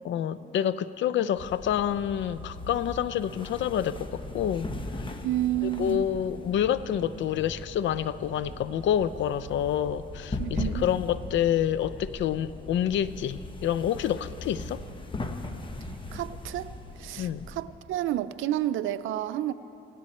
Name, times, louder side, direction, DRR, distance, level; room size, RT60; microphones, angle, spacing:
voice 1, 0.0-4.7 5.6-14.8 17.2-17.5, left 10 dB, 70° left, 15 dB, 0.5 m, -28 dB
sound 1, 1.4-17.6, left 2 dB, 25° left, 1.2 m, -39 dB
voice 2, 5.2-6.1 10.4-10.9 16.1-16.7 17.0-19.5, right 13 dB, 85° right, 14 dB, 0.5 m, -30 dB
17.5 x 17.0 x 4.3 m, 2.8 s
cardioid pair, 90°, 20 cm